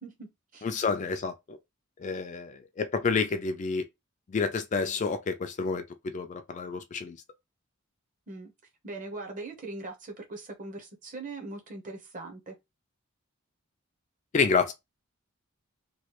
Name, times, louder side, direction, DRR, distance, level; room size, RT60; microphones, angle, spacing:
voice 1, 0.0-0.7 8.3-8.5 8.8-12.5, right 2 dB, 40° right, 0.8 m, -41 dB
voice 2, 0.6-1.6 2.0-3.8 4.3-7.2 14.3-14.7, left 5 dB, 35° left, 0.3 m, -29 dB
3.1 x 2.3 x 2.9 m
head